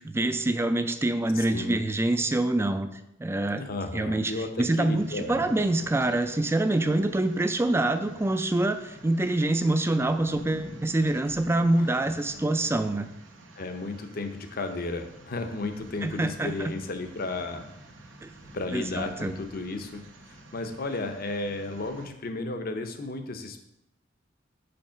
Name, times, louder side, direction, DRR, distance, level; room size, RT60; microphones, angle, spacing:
voice 1, 0.0-2.9 3.2-3.6 3.9-13.1 16.0-16.7 18.2-18.3 18.7-19.3, right 2 dB, 15° right, 9 dB, 0.3 m, -26 dB
voice 2, 1.3-1.8 3.5-4.5 4.8-5.3 11.7-11.9 13.6-17.9 18.5-23.6, left 2 dB, 50° left, 7 dB, 0.7 m, -34 dB
sound 1, 5.0-22.1, right 1 dB, 85° right, 0.9 m, -47 dB
5.3 x 4.7 x 5.7 m, 0.85 s
head